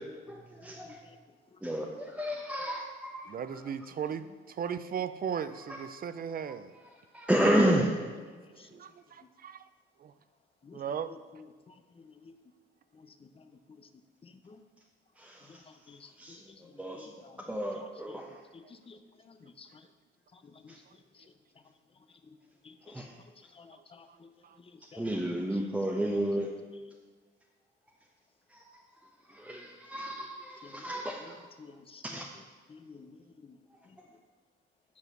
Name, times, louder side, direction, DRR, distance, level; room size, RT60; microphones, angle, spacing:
voice 1, 0.3-1.0 1.6-3.3 7.1-8.1 15.2-15.6 16.2-17.1 17.5-18.3 20.7-20.8 22.9-23.1 24.9-26.5 28.5-28.6 29.3-31.4 32.0-32.3, right 1 dB, 5° right, -2 dB, 0.9 m, -31 dB
voice 2, 0.8-1.2 1.5-1.6 8.6-8.7 10.6-12.4 12.9-13.5 13.8-13.9 14.2-14.6 15.4-17.4 17.8-18.2 18.5-19.9 20.3-20.8 21.1-21.2 22.6-23.1 23.4-24.3 24.6-25.0 30.6-30.9 31.2-31.3 31.6-32.2 32.7-33.6 33.9-34.0, left 4 dB, 30° left, 8 dB, 0.7 m, -54 dB
voice 3, 3.3-6.7 8.5-9.7 10.0-10.1 10.7-11.1 24.4-24.6, right 7 dB, 45° right, 12 dB, 0.5 m, -37 dB
8.3 x 5.0 x 6.0 m, 1.5 s
cardioid pair, 90°, 20 cm